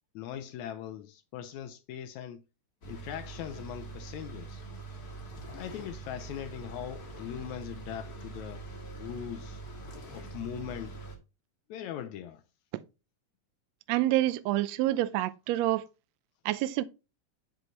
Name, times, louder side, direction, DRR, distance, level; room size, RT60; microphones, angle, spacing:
voice 1, 0.2-2.4 2.9-4.6 5.6-8.6 8.9-9.6 10.1-11.0 11.7-12.4, left 10 dB, 80° left, 1.7 m, -40 dB
sound 1, 2.8-11.2, right 3 dB, 40° left, 1.6 m, -44 dB
voice 2, 13.9-15.8 16.4-16.8, right 15 dB, 80° right, 1.6 m, -27 dB
7.7 x 6.4 x 3.1 m
omnidirectional pair, 3.7 m